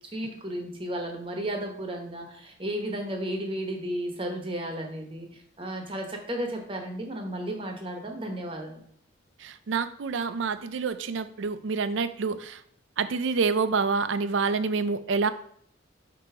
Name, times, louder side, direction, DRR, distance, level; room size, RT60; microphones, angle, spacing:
voice 1, 0.1-8.9, right 1 dB, 25° right, 3 dB, 1.0 m, -33 dB
voice 2, 9.4-12.6 13.0-15.3, right 4 dB, 70° right, 12 dB, 0.4 m, -27 dB
7.6 x 2.8 x 4.8 m, 0.64 s
head